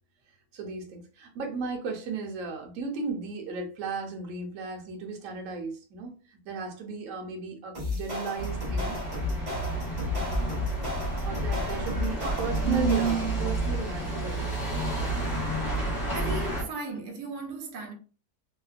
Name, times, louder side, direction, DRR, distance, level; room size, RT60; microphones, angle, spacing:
voice 1, 0.5-9.0 11.2-14.9, right 4 dB, 65° right, 0.9 m, -35 dB
sound 1, 7.7-13.5, left 3 dB, 40° right, 0.7 m, -33 dB
sound 2, 8.4-16.6, right 3 dB, 35° left, 0.8 m, -30 dB
voice 2, 16.1-17.9, right 2 dB, 85° right, 1.2 m, -37 dB
2.8 x 2.0 x 2.4 m
omnidirectional pair, 1.7 m